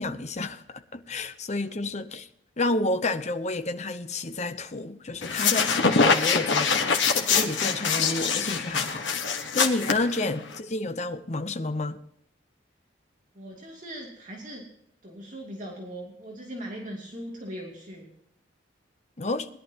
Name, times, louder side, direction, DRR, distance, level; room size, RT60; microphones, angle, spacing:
voice 1, 0.0-2.3 2.6-9.1 9.5-12.0 19.2-19.5, left 2 dB, 35° left, 0.8 m, -30 dB
sound 1, 5.2-10.6, left 5 dB, 75° left, 1.4 m, -24 dB
voice 2, 13.3-14.6 15.0-18.1, right 1 dB, 40° right, 2.6 m, -40 dB
20.5 x 11.5 x 2.9 m
head